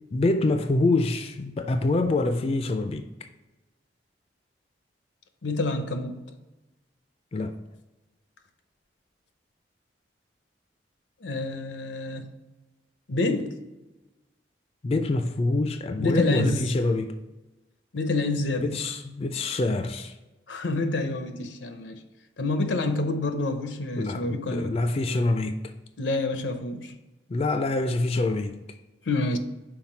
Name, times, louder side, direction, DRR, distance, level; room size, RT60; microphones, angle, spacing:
voice 1, 0.1-3.0 7.3-7.5 14.8-17.1 18.6-20.1 24.0-25.6 27.3-28.6, left 2 dB, 35° left, 0.3 m, -25 dB
voice 2, 5.4-6.2 11.2-12.3 13.1-13.5 16.0-16.6 17.9-18.7 20.5-22.0 22.4-24.8 26.0-26.9 29.1-29.4, left 2 dB, 85° left, 0.7 m, -27 dB
5.7 x 4.4 x 4.4 m
head